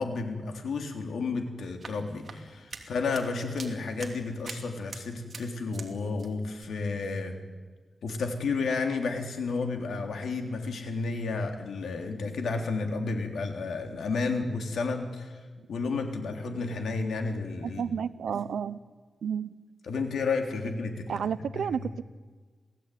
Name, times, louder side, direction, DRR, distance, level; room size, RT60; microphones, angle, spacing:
voice 1, 0.0-7.4 8.0-15.4 15.7-17.8 18.3-18.4 19.8-21.3 21.5-21.7, left 4 dB, 85° left, 4 dB, 3.4 m, -31 dB
sound 1, 1.6-5.9 6.2-6.7, right 4 dB, 45° right, 2.9 m, -45 dB
voice 2, 17.6-18.8 19.2-19.5 21.1-22.0, right 7 dB, 90° right, 15 dB, 0.9 m, -31 dB
27.0 x 17.0 x 9.4 m, 1.4 s
wide cardioid pair, 110°, 0 cm